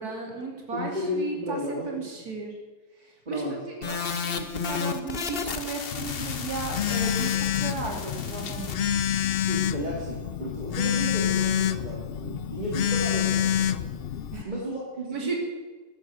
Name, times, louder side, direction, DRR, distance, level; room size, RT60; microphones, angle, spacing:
voice 1, 0.0-2.6 3.0-8.8 14.3-14.5 15.1-15.4, right 3 dB, 90° right, 1 dB, 3.1 m, -35 dB
voice 2, 0.7-2.1 3.3-3.6 9.4-13.9 14.4-15.4, equal, 30° right, -5 dB, 2.5 m, -33 dB
sound 1, 3.8-8.8, left 6 dB, 45° left, 1.1 m, -33 dB
Telephone, 5.9-14.4, left 9 dB, 70° left, 0.5 m, -27 dB
14.0 x 10.5 x 6.2 m, 1.3 s
omnidirectional pair, 1.6 m